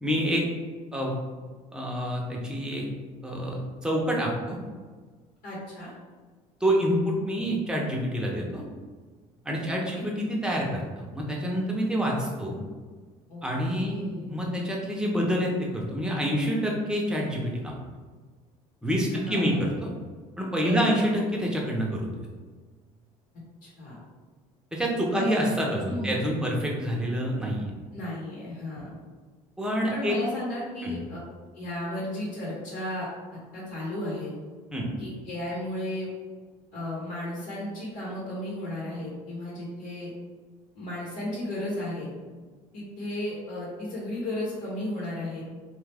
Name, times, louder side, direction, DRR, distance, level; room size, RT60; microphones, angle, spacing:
voice 1, 0.0-0.4 0.9-1.1 1.7-2.8 3.2-4.6 6.6-8.6 9.4-12.6 13.4-14.0 14.3-17.8 18.8-19.9 20.4-22.2 24.7-27.7 29.6-30.2 30.8-31.0 34.7-34.9, equal, 5° right, -2 dB, 0.7 m, -27 dB
voice 2, 5.4-5.9 9.6-10.1 13.3-13.4 13.8-14.3 19.1-19.6 20.6-21.0 23.6-24.0 25.1-25.4 25.9-26.2 27.9-28.9 29.9-31.2 31.5-34.3 35.0-36.1 36.7-40.1 40.7-42.1 42.7-45.4, left 1 dB, 70° left, -6 dB, 1.0 m, -34 dB
3.1 x 2.3 x 3.4 m, 1.4 s
supercardioid pair, 95°, 14 cm